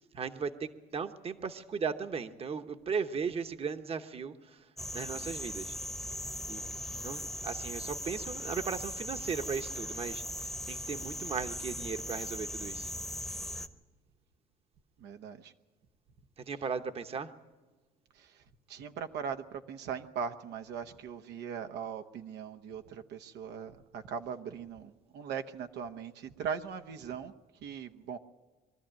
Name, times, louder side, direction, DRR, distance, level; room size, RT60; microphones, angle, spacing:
voice 1, 0.0-5.8 6.5-6.6 6.9-12.9 16.4-17.3, right 5 dB, 35° right, 8 dB, 1.0 m, -37 dB
sound 1, 4.8-13.7, left 1 dB, ahead, 1.0 m, -39 dB
voice 2, 15.0-15.5 18.1-18.4 18.7-27.3 27.6-28.2, right 7 dB, 80° right, 6 dB, 1.0 m, -40 dB
23.0 x 13.0 x 8.9 m, 1.3 s
cardioid pair, 110°, 17 cm